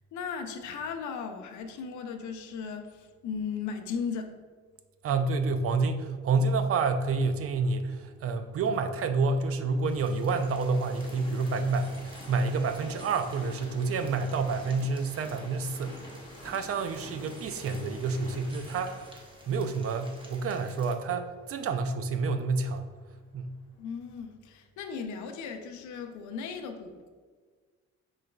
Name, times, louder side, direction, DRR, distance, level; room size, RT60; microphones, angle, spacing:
voice 1, 0.1-4.3 23.8-27.1, left 6 dB, 75° left, 5 dB, 0.5 m, -37 dB
voice 2, 5.0-16.0 16.4-19.1 19.5-22.9 23.3-23.5, right 4 dB, 50° right, 9 dB, 0.4 m, -29 dB
Train, 7.3-23.3 23.9-24.0, left 1 dB, 15° left, 0.9 m, -50 dB
sound 1, 9.8-20.9, right 1 dB, 15° right, 0.8 m, -52 dB
4.9 x 3.9 x 2.2 m, 1.5 s
cardioid pair, 90°, 30 cm